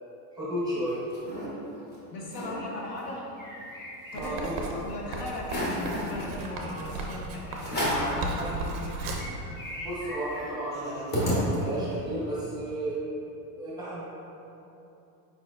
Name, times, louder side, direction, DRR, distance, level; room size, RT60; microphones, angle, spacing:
voice 1, 0.3-1.0 4.1-4.6 9.8-13.0 13.6-14.0, right 1 dB, 10° right, -9 dB, 0.8 m, -33 dB
sound 1, 0.6-1.5 1.9-2.0 2.2-2.6 3.0-4.6 5.0-5.1 5.4-6.1 6.8-7.0 7.6-8.2 8.6-8.7 8.9-12.0, equal, 20° left, 0.9 m, -32 dB
voice 2, 2.1-3.3 4.1-4.5 4.8-9.2, left 2 dB, 70° left, -2 dB, 1.0 m, -37 dB
Writing, 4.2-9.4, right 3 dB, 35° right, 0.4 m, -36 dB
4.9 x 4.2 x 2.4 m, 2.8 s
supercardioid pair, 145°, 49 cm